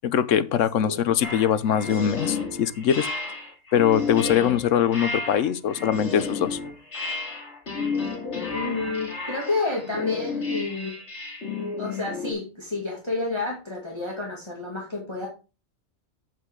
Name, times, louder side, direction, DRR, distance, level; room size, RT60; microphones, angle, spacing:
voice 1, 0.0-3.1 3.7-6.6, left 9 dB, 75° left, 1.0 m, -22 dB
sound 1, 1.2-12.3, left 4 dB, 60° left, 2.7 m, -32 dB
voice 2, 8.5-10.9 11.8-15.3, left 3 dB, 20° left, 2.5 m, -30 dB
8.3 x 7.8 x 3.7 m
omnidirectional pair, 1.4 m